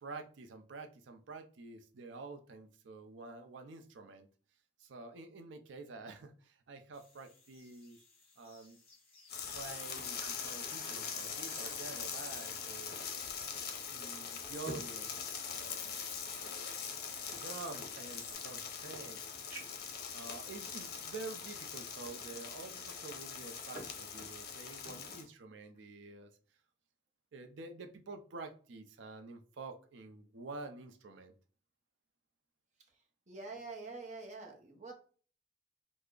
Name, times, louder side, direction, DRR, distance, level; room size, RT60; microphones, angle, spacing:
voice 1, 0.0-4.3 4.8-8.0 8.4-8.8 9.5-13.0 13.9-16.4 17.3-19.2 20.1-26.3 27.3-31.3, right 3 dB, 85° right, 0.5 m, -48 dB
sound 1, 6.9-18.3, left 2 dB, 30° left, 1.0 m, -59 dB
poruing water and putting ice, 9.1-13.1 13.4-13.5 14.1-16.1 17.0-18.4 19.0-19.1 19.5-19.9 20.7-20.8 23.1-24.0 24.3-25.2 25.6-25.8, right 1 dB, 10° right, 1.5 m, -53 dB
sound 2, 9.3-25.2, left 6 dB, 55° left, 0.6 m, -42 dB
voice 2, 33.3-34.9, right 3 dB, 40° right, 0.7 m, -46 dB
3.2 x 2.0 x 3.7 m
head